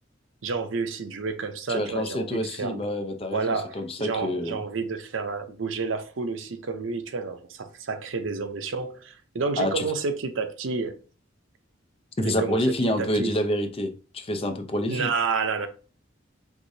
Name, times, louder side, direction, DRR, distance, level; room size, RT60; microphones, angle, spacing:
voice 1, 0.4-2.8 3.3-11.0 12.2-13.3 14.9-15.7, right 4 dB, 80° right, 0.6 m, -30 dB
voice 2, 1.7-4.6 9.6-9.8 12.2-15.1, left 1 dB, 30° left, 0.6 m, -27 dB
4.8 x 3.7 x 2.7 m
head